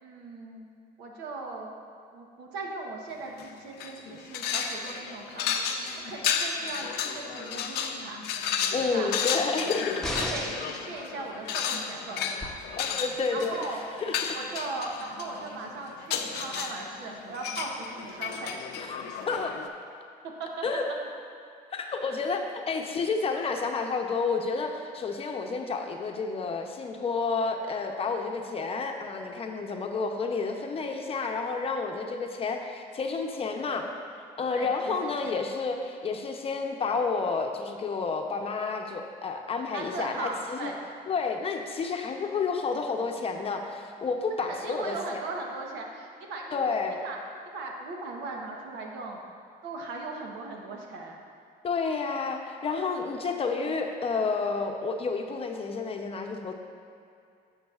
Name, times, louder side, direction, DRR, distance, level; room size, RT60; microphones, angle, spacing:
voice 1, 0.0-0.7 1.0-1.7 2.1-8.3 8.8-9.3 9.6-9.7 10.2-12.6 13.3-13.8 14.3-18.6 20.2-20.6 22.0-22.5 34.5-35.4 39.7-40.8 44.4-46.6 47.0-47.2 47.5-49.2 49.6-51.2, right 3 dB, 90° right, 1 dB, 1.0 m, -38 dB
sound 1, 3.3-3.5 3.8-19.7, left 7 dB, 80° left, 0.6 m, -33 dB
voice 2, 8.7-10.0 12.8-13.7 14.0-14.4 18.8-19.6 20.6-20.9 21.7-33.9 34.4-40.7 41.1-45.2 46.5-47.0 51.6-56.5, left 4 dB, 35° left, 3 dB, 0.7 m, -30 dB
sound 2, 10.0-10.8 12.4-12.5, left 1 dB, 5° left, 0.8 m, -33 dB
10.5 x 7.2 x 2.4 m, 2.4 s
cardioid pair, 110°, 17 cm